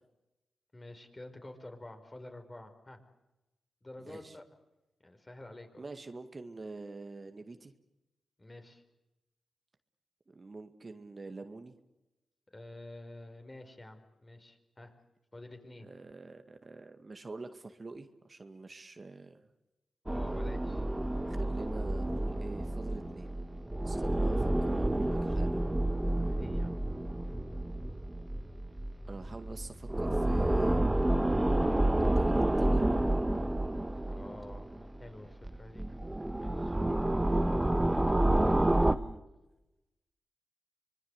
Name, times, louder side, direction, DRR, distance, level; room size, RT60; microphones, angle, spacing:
voice 1, 0.7-3.0 3.8-4.4 5.0-5.9 8.4-8.8 12.5-14.9 15.3-15.9 20.1-20.9 26.2-26.9 34.1-35.9 36.3-37.5, left 1 dB, 25° left, 6 dB, 5.0 m, -49 dB
voice 2, 4.0-4.4 5.8-7.7 10.3-11.7 15.8-19.4 21.3-23.3 23.8-25.7 29.1-30.9 32.0-32.9 37.6-39.2, right 3 dB, 40° right, 7 dB, 1.9 m, -46 dB
sound 1, 20.1-35.1 35.4-39.0, right 1 dB, 15° right, 1.5 m, -29 dB
25.5 x 20.5 x 8.2 m, 0.97 s
cardioid pair, 50°, 0 cm